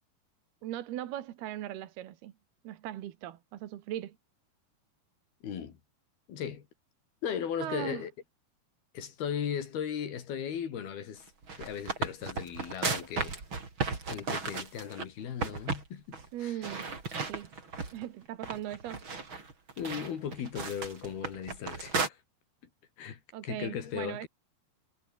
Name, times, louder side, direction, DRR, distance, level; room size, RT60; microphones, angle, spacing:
voice 1, 0.6-2.3 2.7-4.2 7.6-8.1 16.3-16.9 17.3-17.5 17.9-19.0 23.3-24.3, right 13 dB, 80° right, 3.5 m, -39 dB
voice 2, 5.4-5.8 6.3-6.7 7.2-8.1 8.9-11.2 11.6-13.4 14.1-16.6 19.8-22.2 23.0-24.3, left 8 dB, 75° left, 4.9 m, -37 dB
sound 1, 11.3-15.1 15.4-15.9 16.1-16.3 16.6-18.0 18.4-22.1, right 4 dB, 30° right, 4.4 m, -35 dB
omnidirectional pair, 4.4 m